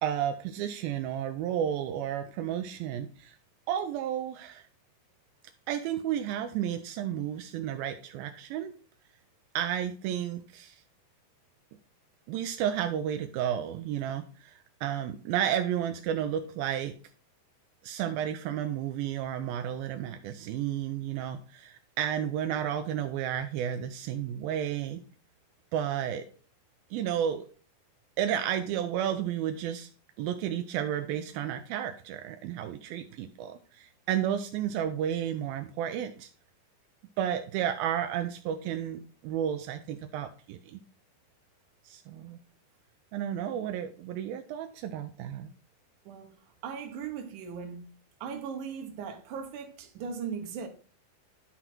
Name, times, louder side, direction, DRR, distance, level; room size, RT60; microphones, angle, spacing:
voice 1, 0.0-3.4 3.7-4.7 5.7-8.7 9.6-10.8 12.3-16.9 17.8-25.0 25.7-26.3 26.9-27.5 28.2-29.9 30.2-36.3 37.2-40.8 41.8-42.4 43.1-45.5, right 10 dB, 85° right, 2.4 m, -32 dB
voice 2, 46.6-47.8 48.2-50.7, right 6 dB, 65° right, 2.5 m, -38 dB
11.0 x 4.0 x 4.4 m
omnidirectional pair, 4.2 m